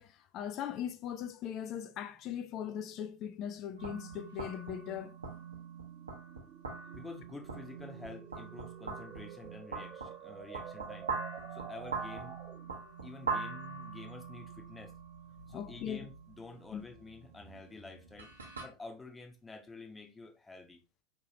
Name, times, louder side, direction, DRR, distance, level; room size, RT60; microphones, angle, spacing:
voice 1, 0.0-5.2 15.5-16.0 16.7-16.8, left 9 dB, 40° left, 0.4 m, -39 dB
sound 1, 1.5-12.8, right 9 dB, 40° right, 0.3 m, -52 dB
sound 2, 3.8-18.6, right 5 dB, 80° right, 1.0 m, -43 dB
voice 2, 6.9-11.1 11.5-12.4 13.0-14.9 15.5-18.3 18.6-20.8, left 3 dB, 15° left, 1.0 m, -49 dB
4.5 x 3.3 x 2.9 m
figure-of-eight pair, 80°, 0 cm